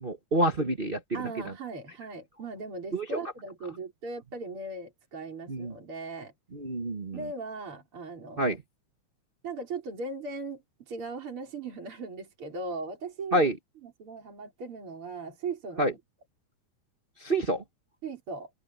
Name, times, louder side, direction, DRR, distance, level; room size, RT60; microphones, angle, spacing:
voice 1, 0.0-1.0 2.9-3.0 5.5-5.7 6.5-7.2 8.4-8.6 13.3-13.5 15.8-15.9 17.2-17.6, right 1 dB, 60° right, 0.5 m, -27 dB
voice 2, 1.1-6.3 7.1-8.6 9.4-13.5 13.8-16.0 18.0-18.5, right 3 dB, 40° right, 5.5 m, -38 dB
open air
omnidirectional pair, 3.6 m